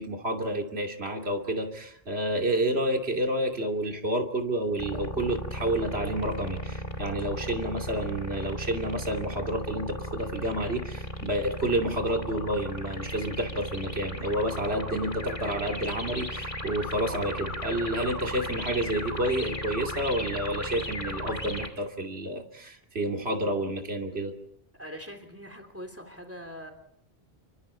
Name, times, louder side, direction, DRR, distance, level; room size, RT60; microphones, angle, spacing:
voice 1, 0.0-24.3, right 1 dB, 80° right, 3 dB, 3.0 m, -29 dB
sound 1, 4.8-21.7, equal, 30° left, 2.6 m, -36 dB
voice 2, 24.8-26.7, equal, 15° right, 7 dB, 3.3 m, -42 dB
30.0 x 24.0 x 4.4 m, 0.70 s
omnidirectional pair, 1.1 m